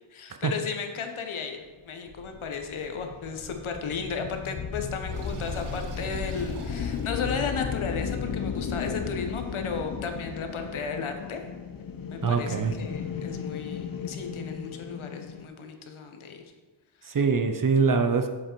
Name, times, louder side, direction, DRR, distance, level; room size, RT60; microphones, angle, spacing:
voice 1, 0.1-1.6 1.8-11.4 12.1-16.5 17.0-17.1, left 5 dB, 70° left, 5 dB, 1.1 m, -34 dB
sound 1, 2.1-15.5, left 6 dB, 45° left, 0.6 m, -35 dB
Sink (filling or washing), 5.1-7.8, right 4 dB, 80° right, 1.2 m, -44 dB
voice 2, 12.2-12.7 17.0-18.3, right 5 dB, 40° right, 7 dB, 0.6 m, -23 dB
7.6 x 7.5 x 4.5 m, 1.3 s
wide cardioid pair, 155°, 50 cm